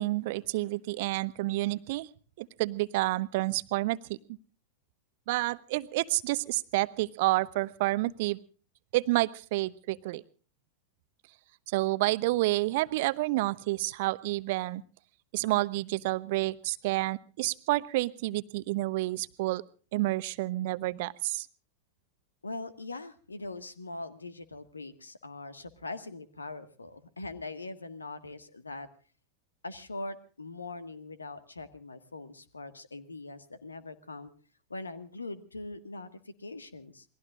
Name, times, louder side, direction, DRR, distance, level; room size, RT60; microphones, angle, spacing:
voice 1, 0.0-2.1 2.4-4.2 5.3-8.4 8.9-10.2 11.7-14.8 15.3-19.6 19.9-21.5, right 19 dB, 50° right, 17 dB, 0.8 m, -29 dB
voice 2, 22.4-28.9 29.6-34.3 34.7-37.0, left 2 dB, 80° left, 12 dB, 1.7 m, -42 dB
28.0 x 20.5 x 2.5 m, 0.38 s
figure-of-eight pair, 90°, 0 cm